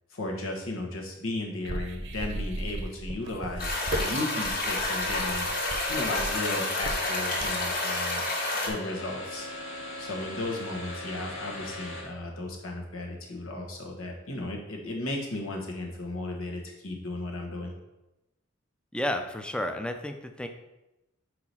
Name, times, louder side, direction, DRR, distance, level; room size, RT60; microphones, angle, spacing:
voice 1, 0.1-5.5 5.9-8.2 8.5-9.5 10.0-17.7, left 2 dB, 90° left, 0 dB, 1.3 m, -35 dB
sound 1, 1.6-7.7, right 1 dB, 60° right, 0.8 m, -35 dB
sound 2, 3.6-8.7, left 2 dB, 45° left, 1.4 m, -30 dB
sound 3, 4.9-12.0, left 1 dB, 75° left, 1.9 m, -39 dB
voice 2, 18.9-20.5, left 1 dB, 5° left, 6 dB, 0.5 m, -31 dB
4.8 x 4.7 x 5.5 m, 0.98 s
head